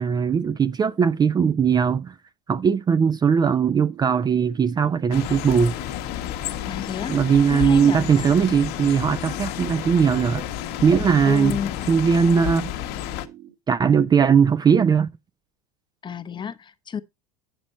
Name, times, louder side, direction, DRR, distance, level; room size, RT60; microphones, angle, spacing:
voice 1, 0.0-2.1 2.5-5.7 7.1-10.4 10.8-11.6 11.9-12.7 13.7-15.1, right 6 dB, 20° right, 0.4 m, -19 dB
sound 1, 3.5-13.5, right 13 dB, 75° right, 3.7 m, -45 dB
sound 2, 5.1-13.3, left 14 dB, 55° left, 1.0 m, -31 dB
voice 2, 6.6-7.2 7.5-8.0 11.2-11.9 16.0-17.0, left 7 dB, 25° left, 0.7 m, -30 dB
9.0 x 6.1 x 4.1 m
hypercardioid pair, 90°, 20 cm